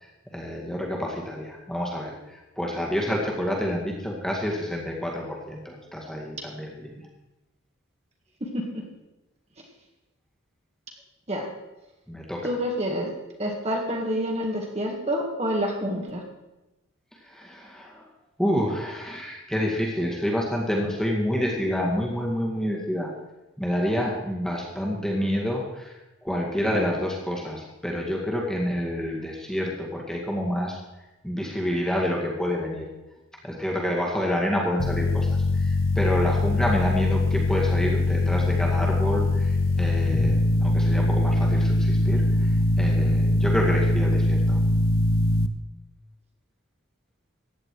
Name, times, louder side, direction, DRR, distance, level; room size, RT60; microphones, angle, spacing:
voice 1, 0.0-7.0 12.1-12.5 17.2-18.1 18.4-23.1 23.6-26.0 26.2-30.8 31.2-32.9 33.4-44.6, equal, 5° left, -2 dB, 2.0 m, -28 dB
voice 2, 8.4-8.8 11.3-11.5 12.4-13.1 13.4-16.2, equal, 30° right, 0 dB, 2.0 m, -28 dB
sound 1, 34.8-45.5, left 2 dB, 75° left, 0.8 m, -22 dB
15.5 x 9.7 x 4.8 m, 1.0 s
head